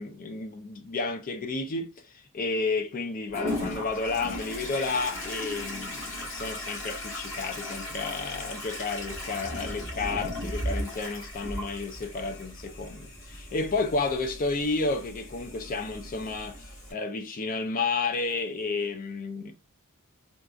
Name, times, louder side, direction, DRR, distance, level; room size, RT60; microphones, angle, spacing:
voice 1, 0.0-19.5, left 3 dB, 40° left, 0.4 m, -31 dB
Toilet flush, 3.3-16.9, left 1 dB, 60° left, 1.9 m, -37 dB
3.8 x 2.3 x 2.4 m
head